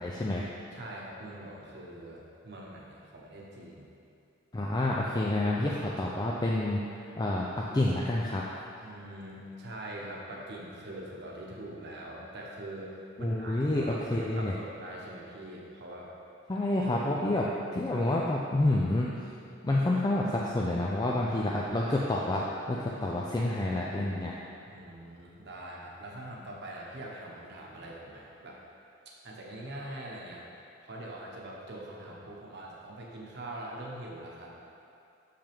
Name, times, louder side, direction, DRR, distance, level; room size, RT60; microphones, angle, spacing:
voice 1, 0.0-0.5 4.5-6.8 7.2-8.5 13.2-14.5 16.5-19.1 19.6-24.3, left 1 dB, 20° left, -4 dB, 0.4 m, -28 dB
voice 2, 0.7-3.9 8.8-12.9 13.2-16.1 17.1-17.2 17.8-18.1 18.4-18.5 24.7-28.6 29.0-30.4 30.8-34.6, right 1 dB, 60° right, -3 dB, 1.0 m, -43 dB
6.7 x 5.7 x 3.5 m, 2.6 s
head